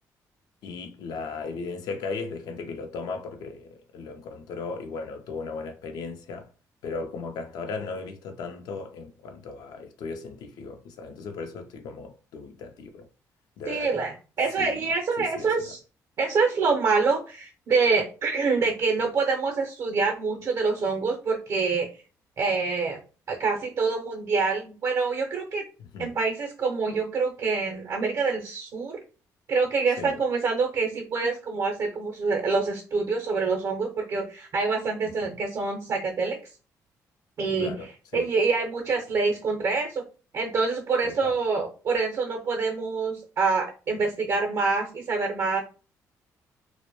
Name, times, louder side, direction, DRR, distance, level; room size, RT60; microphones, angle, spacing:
voice 1, 0.6-6.5 6.8-13.1 13.6-13.9 14.6-14.8 15.2-15.7 25.8-26.1 30.0-30.2 35.0-35.3 37.6-38.3 41.0-41.3, left 4 dB, 75° left, 0.4 m, -37 dB
voice 2, 13.7-15.8 16.2-21.9 22.4-23.0 23.3-25.6 26.0-29.0 29.5-36.4 37.4-37.7 38.1-40.0 40.3-45.6, right 4 dB, 55° right, 0.5 m, -26 dB
2.1 x 2.0 x 2.9 m
cardioid pair, 80°, 7 cm